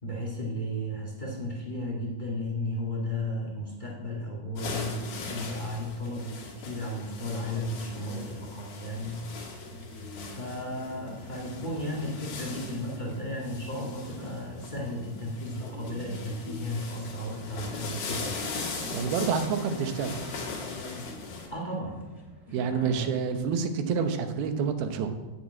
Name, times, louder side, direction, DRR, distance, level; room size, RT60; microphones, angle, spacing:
voice 1, 0.0-9.2 10.3-18.5 21.5-22.0 22.5-23.1, left 1 dB, 35° left, -2 dB, 0.7 m, -34 dB
sound 1, 4.5-21.5, left 4 dB, 75° left, 3.9 m, -40 dB
sound 2, 7.3-22.6, left 1 dB, 10° right, 2.0 m, -46 dB
voice 2, 18.9-20.2 22.5-25.1, right 6 dB, 80° right, 7 dB, 2.8 m, -28 dB
9.4 x 7.2 x 8.6 m, 1.2 s
omnidirectional pair, 4.3 m